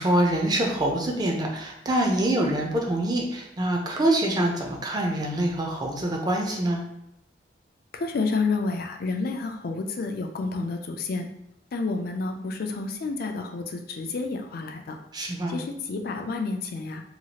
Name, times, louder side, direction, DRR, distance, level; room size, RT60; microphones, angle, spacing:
voice 1, 0.0-6.8 15.1-15.6, right 1 dB, 25° right, 0 dB, 0.5 m, -25 dB
voice 2, 7.9-11.3 11.7-15.0 15.5-17.0, left 3 dB, 55° left, 4 dB, 0.4 m, -30 dB
2.9 x 2.3 x 2.8 m, 0.84 s
head